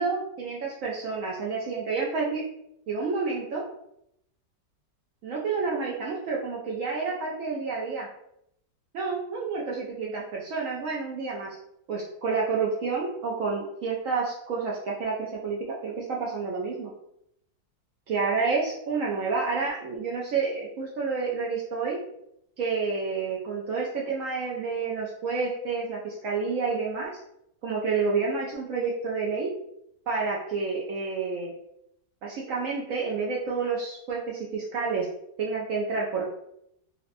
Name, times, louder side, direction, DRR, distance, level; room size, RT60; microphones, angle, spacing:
voice 1, 0.0-2.4 2.9-3.6 5.2-8.1 8.9-11.6 11.9-16.9 18.1-22.0 22.6-27.2 27.6-29.5 30.1-31.5 32.2-35.1 35.4-36.2, right 4 dB, 85° right, -3 dB, 0.7 m, -29 dB
4.2 x 2.1 x 2.5 m, 0.77 s
omnidirectional pair, 1.9 m